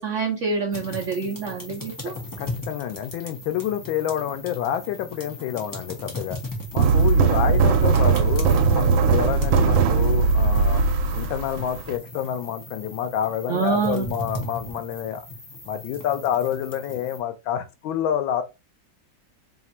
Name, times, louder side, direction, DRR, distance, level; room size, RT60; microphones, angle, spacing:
voice 1, 0.0-2.1 13.5-14.1, right 5 dB, 70° right, 0.7 m, -26 dB
sound 1, 0.7-17.2, left 1 dB, 20° left, 0.5 m, -38 dB
voice 2, 2.4-6.4 6.7-10.8 11.1-15.3 15.6-18.4, left 10 dB, 90° left, 1.4 m, -28 dB
sound 2, 6.8-11.9, right 5 dB, 85° right, 1.4 m, -19 dB
3.5 x 2.4 x 4.1 m
omnidirectional pair, 2.1 m